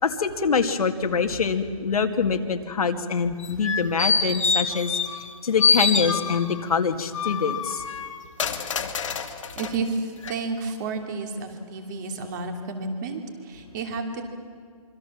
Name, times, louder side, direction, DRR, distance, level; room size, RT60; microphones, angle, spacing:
voice 1, 0.0-7.8, left 5 dB, 85° left, 5 dB, 2.1 m, -25 dB
sound 1, 3.4-5.3 5.6-6.6 7.1-9.7 10.2-10.3, left 5 dB, 60° left, 2.3 m, -25 dB
voice 2, 9.6-14.2, right 3 dB, 30° right, 5 dB, 2.9 m, -31 dB
25.5 x 25.0 x 7.3 m, 2.2 s
hypercardioid pair, 165°, 18 cm